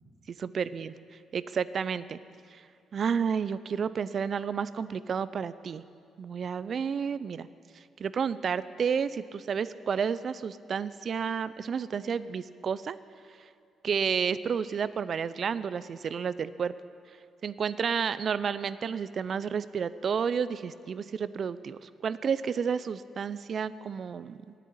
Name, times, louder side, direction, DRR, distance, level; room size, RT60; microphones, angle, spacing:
voice 1, 0.4-0.9 1.3-2.2 2.5-2.6 2.9-5.8 6.2-7.5 8.0-13.0 13.8-16.7 17.4-24.5, right 6 dB, 50° right, 16 dB, 0.5 m, -31 dB
11.0 x 9.2 x 9.5 m, 2.3 s
cardioid pair, 90°, 0 cm